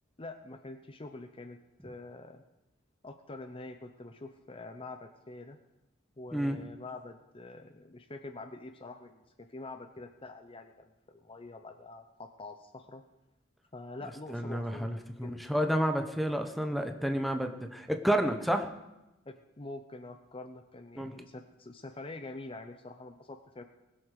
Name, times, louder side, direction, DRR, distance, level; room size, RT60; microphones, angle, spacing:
voice 1, 0.2-1.6 1.8-2.4 3.0-5.6 6.2-13.0 13.7-14.9 15.2-15.3 19.3-23.6, left 2 dB, 25° left, 7 dB, 0.7 m, -45 dB
voice 2, 6.3-6.6 14.3-18.7 21.0-21.1, equal, ahead, 6 dB, 1.0 m, -30 dB
20.0 x 7.9 x 6.6 m, 0.96 s
head